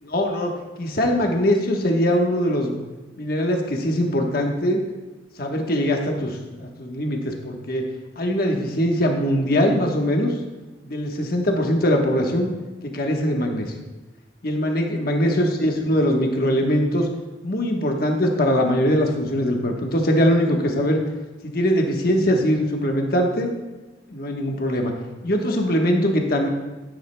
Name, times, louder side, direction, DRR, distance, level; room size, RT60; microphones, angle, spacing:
voice 1, 0.0-2.8 3.2-4.8 5.4-7.8 8.2-10.3 10.8-12.5 12.8-13.7 14.4-17.1 17.4-21.0 21.4-23.5 24.1-24.9 25.2-26.5, equal, 50° left, 2 dB, 1.2 m, -22 dB
11.0 x 10.0 x 2.2 m, 1.2 s
head